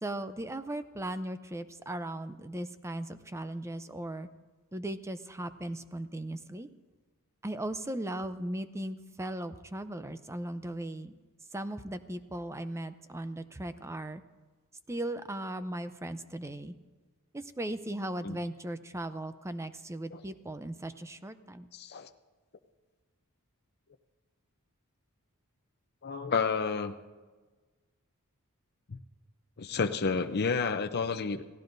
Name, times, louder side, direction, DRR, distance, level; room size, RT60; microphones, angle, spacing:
voice 1, 0.0-4.3 4.7-6.7 7.4-11.2 11.5-14.2 14.9-16.7 17.3-21.7, right 1 dB, 15° right, 11 dB, 0.6 m, -37 dB
voice 2, 21.7-22.1 26.0-26.9 28.9-29.0 29.6-31.4, left 5 dB, 45° left, 7 dB, 0.6 m, -30 dB
28.5 x 16.5 x 2.6 m, 1.3 s
head